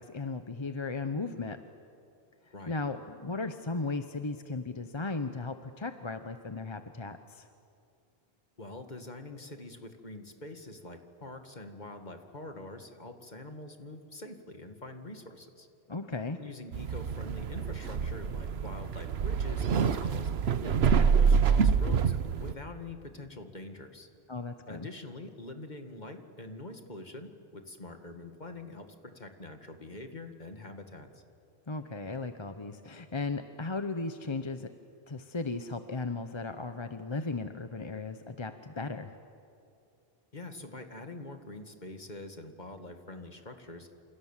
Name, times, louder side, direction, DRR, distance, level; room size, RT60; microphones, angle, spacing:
voice 1, 0.0-1.6 2.7-7.5 15.9-16.4 24.3-24.9 31.7-34.7 35.1-39.1, left 3 dB, 30° left, 8 dB, 0.9 m, -36 dB
voice 2, 8.6-15.7 16.3-20.3 20.6-22.1 22.4-24.1 24.7-31.2 40.3-43.9, left 2 dB, 45° left, 6 dB, 2.2 m, -45 dB
sound 1, 16.7-22.5, right 6 dB, 75° right, 1.1 m, -26 dB
28.0 x 28.0 x 7.4 m, 2.6 s
omnidirectional pair, 1.1 m